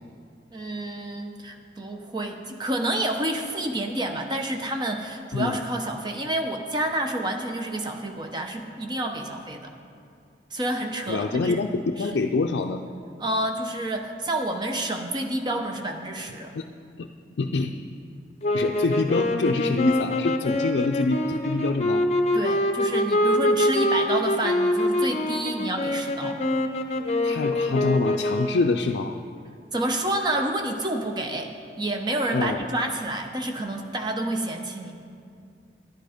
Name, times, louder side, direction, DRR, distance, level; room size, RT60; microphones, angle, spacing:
voice 1, 0.5-9.7 10.5-11.6 12.0-12.1 13.2-16.5 22.3-26.4 29.7-34.9, right 1 dB, 25° right, 4 dB, 0.8 m, -29 dB
voice 2, 11.1-12.8 16.5-16.7 17.0-17.1 17.4-17.7 18.5-22.1 27.2-29.2 32.3-32.7, left 3 dB, 80° left, 3 dB, 0.4 m, -25 dB
sound 1, 18.4-28.8, left 1 dB, 35° left, 0.7 m, -25 dB
11.0 x 10.5 x 5.0 m, 2.3 s
head